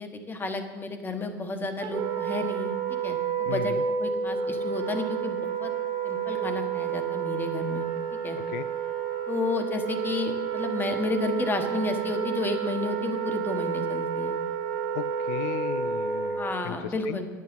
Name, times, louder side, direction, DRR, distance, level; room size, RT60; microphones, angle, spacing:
voice 1, 0.0-3.7 4.0-5.7 6.0-7.9 8.1-8.4 9.3-14.4 16.4-17.3, left 3 dB, 20° left, 6 dB, 1.4 m, -31 dB
Wind instrument woodwind instrument, 1.8-16.7, right 7 dB, 50° right, 1.9 m, -30 dB
voice 2, 3.5-3.8 8.4-8.6 14.9-17.2, left 14 dB, 75° left, 12 dB, 0.4 m, -36 dB
10.5 x 8.9 x 5.4 m, 1.4 s
supercardioid pair, 105°, 10 cm